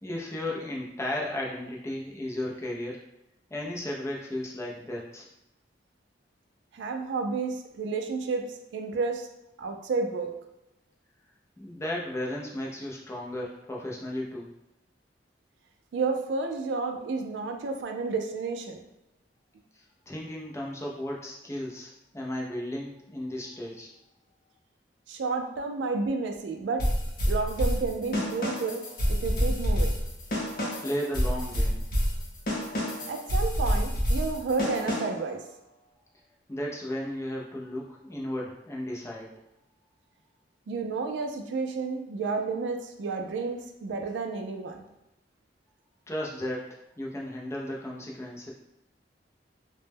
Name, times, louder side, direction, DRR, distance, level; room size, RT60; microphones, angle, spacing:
voice 1, 0.0-3.0 3.5-5.3 11.6-14.5 20.1-23.9 30.8-31.8 36.5-39.3 46.1-46.6 47.0-48.5, left 1 dB, 15° left, -2 dB, 0.4 m, -34 dB
voice 2, 6.7-9.3 9.6-10.4 15.9-18.8 25.1-26.9 27.3-29.9 33.1-35.4 40.7-44.8, right 4 dB, 70° right, 5 dB, 0.3 m, -31 dB
sound 1, 26.8-35.3, equal, 50° left, 0.7 m, -28 dB
2.1 x 2.0 x 3.3 m, 0.89 s
head